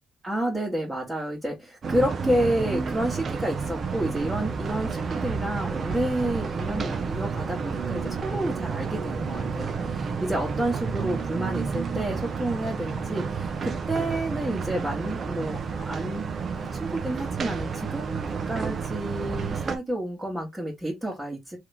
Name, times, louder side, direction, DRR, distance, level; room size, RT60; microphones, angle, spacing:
voice 1, 0.2-16.3 16.8-21.6, right 1 dB, 15° right, 2.1 m, -30 dB
sound 1, 1.8-19.8, right 5 dB, 50° right, 0.8 m, -30 dB
3.7 x 3.2 x 3.5 m
cardioid pair, 80°, 0 cm